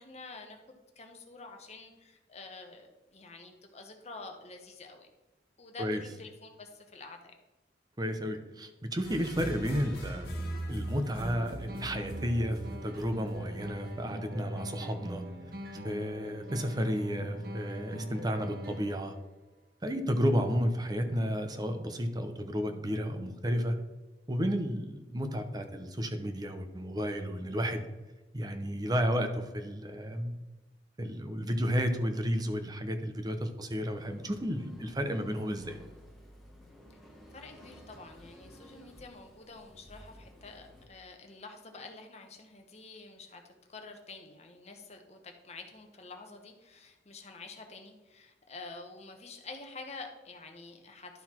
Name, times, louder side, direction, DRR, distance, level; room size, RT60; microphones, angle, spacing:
voice 1, 0.0-5.1 5.6-7.3 37.3-43.4 43.7-51.2, left 3 dB, 40° left, 4 dB, 1.1 m, -48 dB
voice 2, 8.0-15.2 15.8-19.1 19.8-23.7 24.3-27.8 28.3-30.3 31.0-35.8, equal, 25° right, 7 dB, 0.8 m, -32 dB
sound 1, 9.0-14.0, right 1 dB, 60° left, 1.8 m, -40 dB
sound 2, 11.2-19.2, equal, 60° right, 1.0 m, -42 dB
sound 3, 33.9-40.9, equal, ahead, 1.1 m, -54 dB
11.5 x 4.0 x 4.4 m, 1.1 s
head